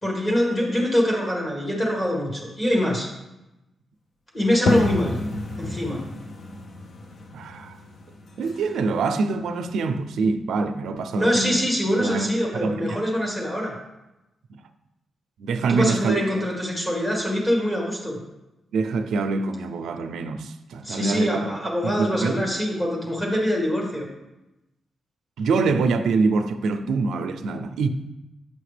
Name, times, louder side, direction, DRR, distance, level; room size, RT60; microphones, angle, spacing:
voice 1, 0.0-3.1 4.3-5.2 5.6-6.0 11.1-13.7 15.7-18.2 20.8-24.1, equal, 20° left, 1.7 m, -24 dB
sound 1, 4.7-10.1, left 2 dB, 45° left, 0.6 m, -30 dB
voice 2, 7.3-7.8 8.4-11.6 12.0-13.0 14.5-14.6 15.4-16.1 18.7-21.5 21.8-22.3 25.4-27.9, right 4 dB, 85° right, 0.4 m, -25 dB
8.0 x 5.7 x 3.3 m
wide cardioid pair, 165°, 0 cm